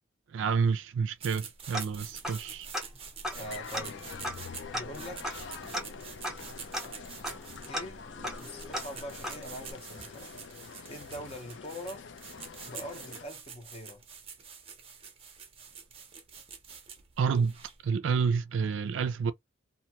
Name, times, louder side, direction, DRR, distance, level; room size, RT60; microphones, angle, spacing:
voice 1, 0.3-2.7 17.2-17.5 17.8-19.3, right 5 dB, 75° right, 0.4 m, -29 dB
sound 1, 1.2-17.9, right 6 dB, 30° right, 0.6 m, -47 dB
Tick-tock, 1.7-2.5 2.7-2.8 3.2-9.7, equal, ahead, 0.8 m, -38 dB
sound 2, 3.3-13.3, left 6 dB, 65° left, 0.4 m, -46 dB
voice 2, 3.3-4.1 4.7-5.3 7.7-8.0 8.4-10.4 10.9-12.1 12.6-14.0, equal, 30° left, 0.8 m, -43 dB
2.5 x 2.2 x 2.8 m
head